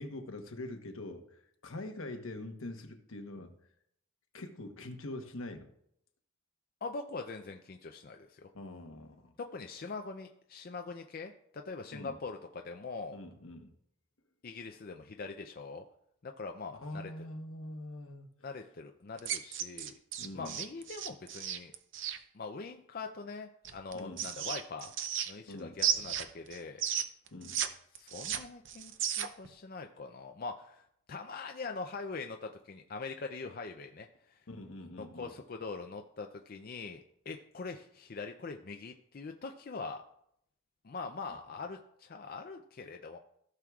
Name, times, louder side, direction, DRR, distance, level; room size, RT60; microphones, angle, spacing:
voice 1, 0.0-3.5 4.3-5.7 8.5-9.3 11.9-12.2 13.1-13.7 16.7-18.5 20.2-20.6 23.9-24.3 25.5-25.8 27.3-27.6 34.5-35.3 41.3-41.4, left 1 dB, 75° left, 5 dB, 1.1 m, -44 dB
voice 2, 6.8-8.5 9.4-13.2 14.4-15.8 16.2-17.1 18.4-19.9 20.3-21.7 22.3-24.9 25.3-26.8 27.9-34.4 35.0-40.0 40.8-43.2, left 4 dB, 45° left, 5 dB, 0.4 m, -43 dB
sound 1, 19.2-22.2 23.6-25.5 25.8-27.7 27.9-29.5, right 9 dB, 60° right, 0.6 m, -34 dB
15.5 x 6.2 x 2.4 m, 0.73 s
head